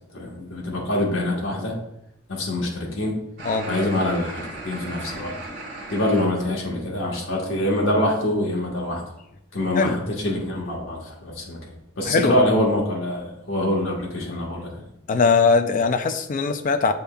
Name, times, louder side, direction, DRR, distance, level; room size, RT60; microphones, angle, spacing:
voice 1, 0.1-1.8 2.3-3.2 3.7-5.4 5.9-9.0 9.5-11.6 12.0-14.7, left 1 dB, 80° left, -2 dB, 1.1 m, -25 dB
voice 2, 3.4-3.8 9.8-10.0 12.0-12.4 15.1-16.9, left 4 dB, 45° left, 8 dB, 0.4 m, -20 dB
sound 1, 3.4-6.3, right 2 dB, 60° right, 1.6 m, -36 dB
6.9 x 3.4 x 2.2 m, 0.79 s
head